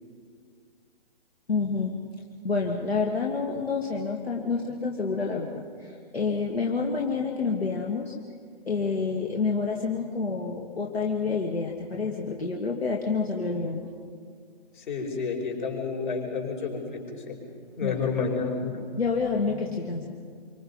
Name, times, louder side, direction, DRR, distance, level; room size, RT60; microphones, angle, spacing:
voice 1, 1.5-2.0 2.4-8.1 8.7-13.9 17.8-18.0 19.0-20.1, left 4 dB, 80° left, 0 dB, 2.3 m, -28 dB
voice 2, 14.7-17.4 17.7-18.8, left 5 dB, 50° left, 1 dB, 5.4 m, -30 dB
27.0 x 24.5 x 5.5 m, 2.1 s
figure-of-eight pair, 135°, 31 cm